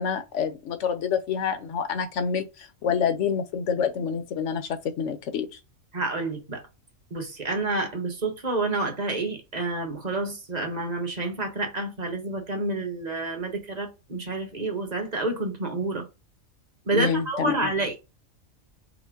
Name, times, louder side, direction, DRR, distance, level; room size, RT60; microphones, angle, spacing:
voice 1, 0.0-5.6 16.9-17.5, left 7 dB, 65° left, 1.0 m, -27 dB
voice 2, 5.9-6.6 7.1-16.1 16.9-18.0, right 2 dB, 35° right, 1.0 m, -29 dB
5.0 x 2.1 x 3.7 m
omnidirectional pair, 1.4 m